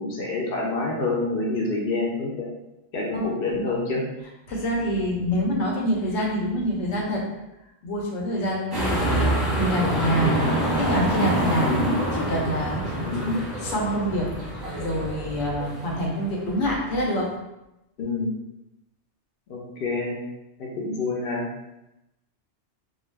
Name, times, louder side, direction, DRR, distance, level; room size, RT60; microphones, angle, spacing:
voice 1, 0.0-2.5 2.9-4.0 8.9-9.2 10.2-10.5 11.6-11.9 13.1-13.4 18.0-18.3 19.5-20.2 20.6-21.4, left 2 dB, 60° left, -3 dB, 0.8 m, -27 dB
voice 2, 3.1-3.7 4.5-7.2 7.8-11.8 12.2-13.2 13.6-17.3, equal, 75° left, -2 dB, 1.0 m, -26 dB
sound 1, 8.7-17.2, right 1 dB, 25° right, 0.7 m, -27 dB
2.4 x 2.3 x 3.2 m, 0.92 s
omnidirectional pair, 1.2 m